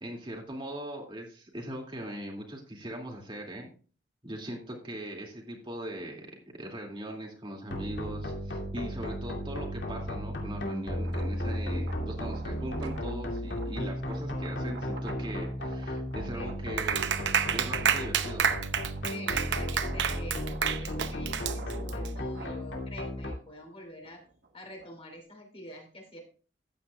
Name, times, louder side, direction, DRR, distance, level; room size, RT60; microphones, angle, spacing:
voice 1, 0.0-3.7 4.2-17.1 17.5-18.4, right 1 dB, 30° right, 0 dB, 2.5 m, -40 dB
sound 1, 7.7-23.3, equal, 75° left, 2.5 m, -35 dB
sound 2, 10.9-17.5 18.0-25.2, right 3 dB, 70° right, 1.3 m, -50 dB
voice 2, 16.3-16.8 19.1-24.2 24.5-26.2, equal, 35° left, 2 dB, 2.9 m, -46 dB
Clapping, 16.8-22.1, right 7 dB, 85° right, 0.8 m, -29 dB
14.0 x 9.2 x 2.4 m, 0.39 s
head